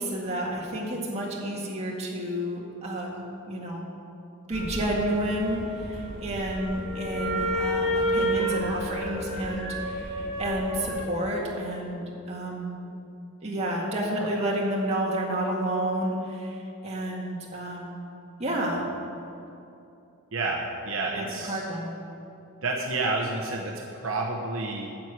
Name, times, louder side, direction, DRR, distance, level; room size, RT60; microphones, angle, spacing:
voice 1, 0.0-3.1 3.5-3.9 4.5-12.8 13.4-18.0 18.4-18.8 21.2-21.9, right 1 dB, 30° right, -3 dB, 1.9 m, -30 dB
sound 1, 4.5-11.0, equal, 60° left, 2.2 m, -30 dB
voice 2, 20.3-21.7 22.6-24.9, right 3 dB, 65° right, -1 dB, 1.0 m, -30 dB
9.1 x 7.5 x 8.2 m, 2.8 s
head